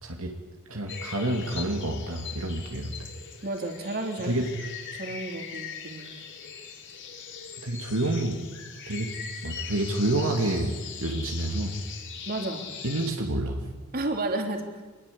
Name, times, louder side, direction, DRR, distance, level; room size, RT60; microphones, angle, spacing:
voice 1, 0.0-0.3 0.7-3.1 4.2-4.5 7.6-8.4 8.9-9.1 9.4-11.8 12.8-13.6, right 1 dB, 70° right, 2 dB, 2.6 m, -28 dB
sound 1, 0.9-13.1, left 7 dB, 55° left, 3.8 m, -41 dB
voice 2, 3.4-4.3 4.9-6.1 12.3-12.6 13.9-14.8, right 2 dB, 45° right, 4 dB, 3.5 m, -31 dB
26.0 x 21.0 x 8.6 m, 1.3 s
head